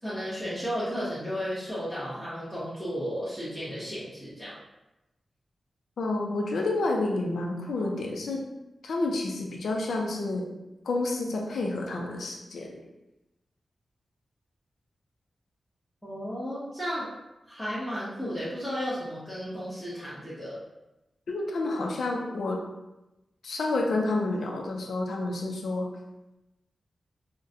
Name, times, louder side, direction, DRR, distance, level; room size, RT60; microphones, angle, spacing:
voice 1, 0.0-4.6 16.0-17.1 17.5-20.6, equal, 5° right, -11 dB, 0.8 m, -34 dB
voice 2, 6.0-8.4 8.8-10.5 10.8-12.7 21.3-22.6 23.4-25.9, left 2 dB, 80° left, 0 dB, 0.4 m, -29 dB
3.8 x 2.1 x 2.6 m, 0.96 s
wide cardioid pair, 120°, 0 cm